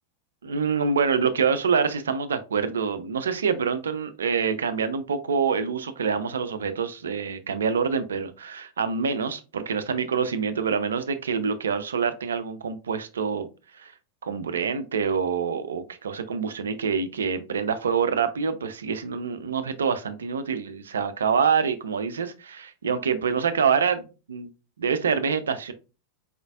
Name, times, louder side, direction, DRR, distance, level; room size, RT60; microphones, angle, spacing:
voice 1, 0.4-13.5 13.7-13.9 14.2-24.5 24.8-25.7, right 6 dB, 65° right, 11 dB, 0.5 m, -26 dB
4.2 x 3.9 x 2.3 m, 0.31 s
figure-of-eight pair, 90°, 0 cm